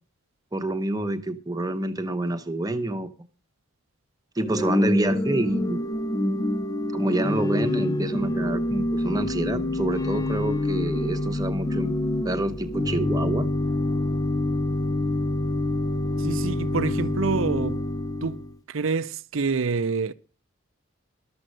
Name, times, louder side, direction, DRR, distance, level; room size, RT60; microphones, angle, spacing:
voice 1, 0.5-3.1 4.3-5.8 6.9-11.9 12.2-13.5, right 1 dB, 15° right, 0.9 m, -27 dB
Organ / Church bell, 4.4-18.6, left 1 dB, 15° left, 0.5 m, -26 dB
voice 2, 16.2-17.8 18.2-18.4 18.7-20.1, right 4 dB, 70° right, 0.6 m, -27 dB
12.5 x 7.6 x 6.5 m
head